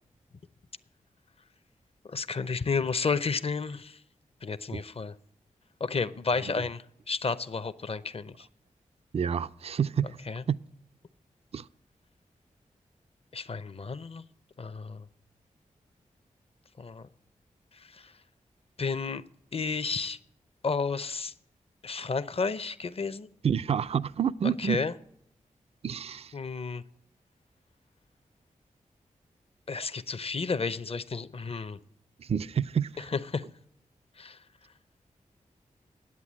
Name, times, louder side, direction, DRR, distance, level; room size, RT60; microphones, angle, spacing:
voice 1, 2.1-4.0 4.4-5.1 5.8-8.5 10.3-10.4 13.3-14.2 14.6-15.0 16.8-17.1 17.9-18.1 18.8-19.2 19.5-20.2 20.6-21.3 21.8-23.3 24.6-24.9 26.3-26.8 29.7-31.8 33.1-33.4 34.2-34.4, left 4 dB, 45° left, 0.6 m, -32 dB
voice 2, 9.1-10.2 10.5-10.6 11.5-11.7 23.4-24.8 25.8-26.3 32.2-33.1, right 8 dB, 45° right, 0.4 m, -28 dB
9.6 x 8.2 x 7.4 m
cardioid pair, 40°, 14 cm